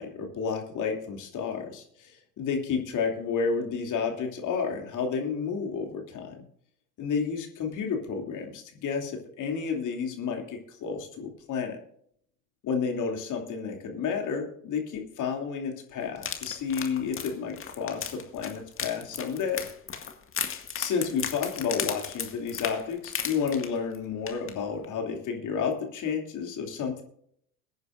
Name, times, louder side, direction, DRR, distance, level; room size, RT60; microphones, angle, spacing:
voice 1, 0.0-1.8 2.4-6.4 7.0-11.8 12.6-19.7 20.8-27.0, left 6 dB, 45° left, 3 dB, 2.9 m, -31 dB
sound 1, 16.2-24.0 24.3-24.5 24.8-24.9, left 7 dB, 30° left, 2.0 m, -35 dB
22.5 x 9.4 x 2.6 m, 0.67 s
hypercardioid pair, 70°, 42 cm